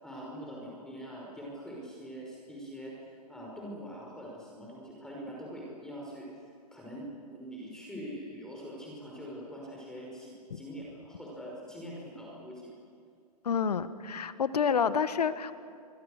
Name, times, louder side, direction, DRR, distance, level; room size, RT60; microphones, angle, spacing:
voice 1, 0.0-2.9 3.3-6.3 6.7-12.7, equal, 5° left, -4 dB, 5.5 m, -43 dB
voice 2, 13.4-15.5, left 6 dB, 75° left, 12 dB, 1.5 m, -28 dB
29.0 x 24.5 x 6.6 m, 2.2 s
hypercardioid pair, 125°, 20 cm